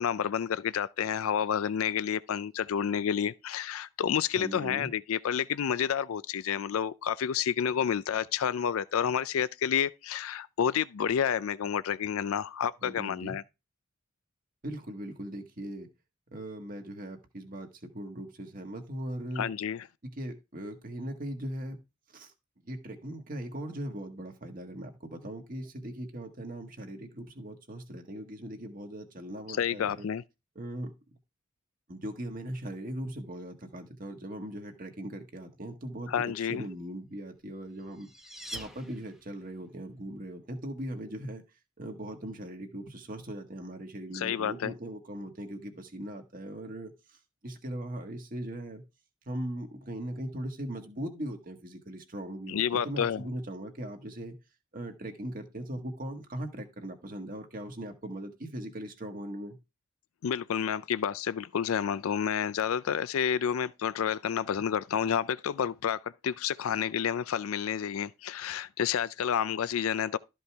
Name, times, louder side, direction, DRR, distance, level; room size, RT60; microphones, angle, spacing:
voice 1, 0.0-13.4 19.4-19.8 29.5-30.2 36.1-36.6 44.1-44.7 52.5-53.2 60.2-70.2, left 8 dB, 85° left, 0.4 m, -30 dB
voice 2, 4.4-4.9 12.8-13.4 14.6-15.9 16.3-19.5 20.0-21.8 22.1-22.3 22.6-30.1 30.5-30.9 31.9-38.1 38.5-41.4 41.8-47.2 47.4-48.8 49.3-54.4 54.7-59.6, right 1 dB, 40° right, 1.6 m, -39 dB
sound 1, 37.4-39.5, right 1 dB, ahead, 0.8 m, -45 dB
13.0 x 5.3 x 3.5 m
head